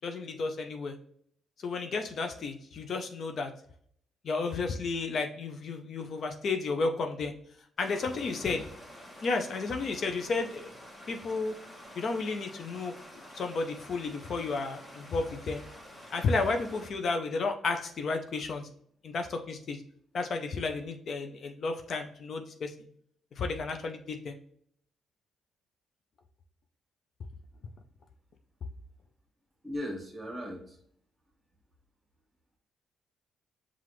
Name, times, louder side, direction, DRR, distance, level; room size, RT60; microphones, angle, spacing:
voice 1, 0.0-0.9 1.6-3.5 4.2-7.3 7.8-8.6 9.2-10.7 11.1-11.5 12.0-12.9 13.3-15.6 16.1-18.7 19.0-19.8 20.1-22.7 23.4-24.3, left 4 dB, 55° left, 5 dB, 0.5 m, -32 dB
Stream, 7.8-16.9, equal, 20° left, 1.0 m, -49 dB
voice 2, 8.2-8.6 29.6-30.8, equal, 20° right, 1 dB, 1.4 m, -38 dB
5.8 x 2.4 x 3.1 m, 0.64 s
cardioid pair, 90°, 0 cm